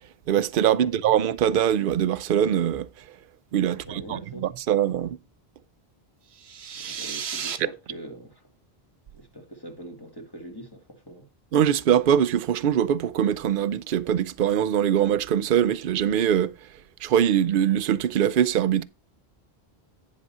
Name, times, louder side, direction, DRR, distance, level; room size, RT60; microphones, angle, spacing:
voice 1, 0.3-2.9 3.5-5.2 6.8-6.9 11.5-16.5 17.0-18.8, right 9 dB, 60° right, 0.7 m, -22 dB
voice 2, 3.7-4.5 6.7-8.4 9.1-11.3, right 1 dB, 20° left, 1.7 m, -42 dB
sound 1, 6.3-7.6, right 7 dB, 80° right, 1.2 m, -33 dB
10.5 x 4.2 x 5.5 m
omnidirectional pair, 1.1 m